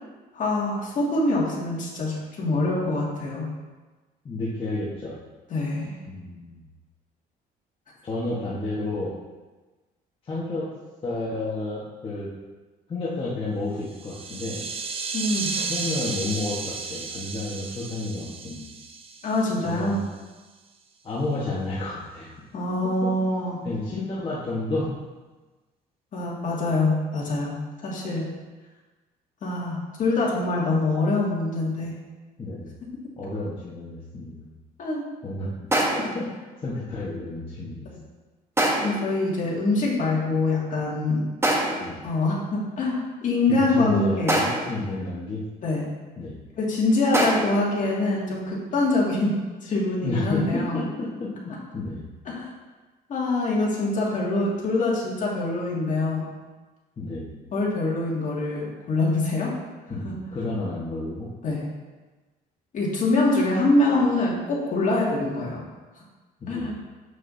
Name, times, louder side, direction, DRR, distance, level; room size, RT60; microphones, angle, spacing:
voice 1, 0.3-3.5 5.5-5.9 15.1-15.5 19.2-20.0 22.5-23.6 26.1-27.6 27.8-28.3 29.4-31.9 34.8-35.1 38.8-41.2 42.0-44.4 45.6-45.9 46.6-49.3 49.6-50.8 52.3-52.5 53.1-56.2 57.5-59.5 60.0-60.2 61.4-61.6 62.7-65.6 66.5-66.7, left 2 dB, 50° left, -4 dB, 2.1 m, -24 dB
voice 2, 4.2-5.1 6.1-6.6 8.0-9.1 10.3-10.7 11.0-12.3 12.9-14.6 15.7-18.7 19.6-20.1 21.0-22.4 23.0-23.1 23.6-24.9 32.4-32.7 33.2-34.5 35.2-35.5 36.1-36.2 36.6-37.9 41.8-42.0 43.5-45.4 46.2-46.4 50.0-52.0 57.0-57.3 59.9-61.3 66.4-66.7, left 2 dB, 30° left, -7 dB, 1.3 m, -31 dB
sound 1, 13.9-19.9, right 5 dB, 35° right, 0.6 m, -33 dB
sound 2, 35.7-36.2 38.6-39.1 41.4-42.0 44.3-44.9 47.1-47.7, right 1 dB, 15° right, 1.0 m, -24 dB
7.4 x 6.3 x 2.7 m, 1.2 s
cardioid pair, 110°, 17 cm